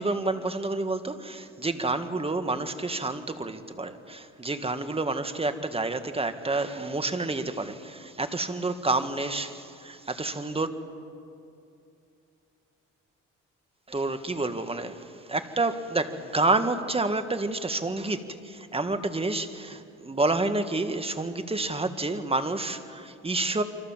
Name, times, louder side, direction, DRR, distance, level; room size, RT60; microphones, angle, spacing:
voice 1, 0.0-10.7 13.9-23.6, right 2 dB, 20° right, 9 dB, 1.9 m, -29 dB
28.5 x 25.0 x 7.5 m, 2.5 s
cardioid pair, 90°, 30 cm